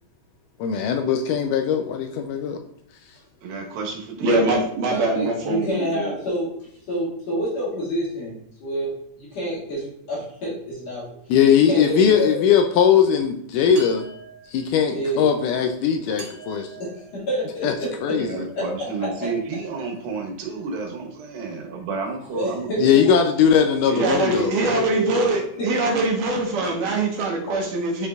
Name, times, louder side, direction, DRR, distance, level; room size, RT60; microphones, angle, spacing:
voice 1, 0.6-2.6 11.3-14.0 14.5-16.7 17.6-17.7 18.0-18.3 22.8-24.5, left 7 dB, 85° left, 5 dB, 1.8 m, -19 dB
voice 2, 3.4-4.4 18.2-23.1, right 4 dB, 90° right, 1 dB, 3.0 m, -31 dB
voice 3, 4.2-6.1 23.9-28.1, right 2 dB, 70° right, -2 dB, 2.6 m, -23 dB
voice 4, 4.9-6.5 6.9-11.1 11.7-12.4 14.9-15.3 16.8-18.2 18.5-19.3 22.3-23.1 24.6-25.7 27.5-27.6, right 1 dB, 50° left, -7 dB, 2.9 m, -28 dB
sound 1, 13.7-14.8 16.2-18.0, right 4 dB, 20° right, 2.0 m, -43 dB
9.7 x 4.5 x 2.3 m, 0.69 s
omnidirectional pair, 4.1 m